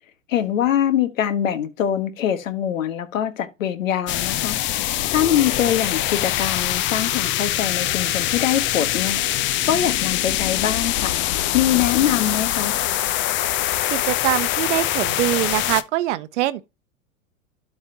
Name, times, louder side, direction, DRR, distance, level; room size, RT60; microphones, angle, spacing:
voice 1, 0.3-4.6 5.1-9.2 9.7-11.1 11.5-12.8, left 10 dB, 70° left, 1.5 m, -23 dB
sound 1, 4.1-15.8, left 13 dB, 30° left, 0.6 m, -23 dB
voice 2, 13.9-16.6, right 15 dB, 60° right, 0.8 m, -23 dB
12.0 x 4.2 x 2.8 m
hypercardioid pair, 100°, 41 cm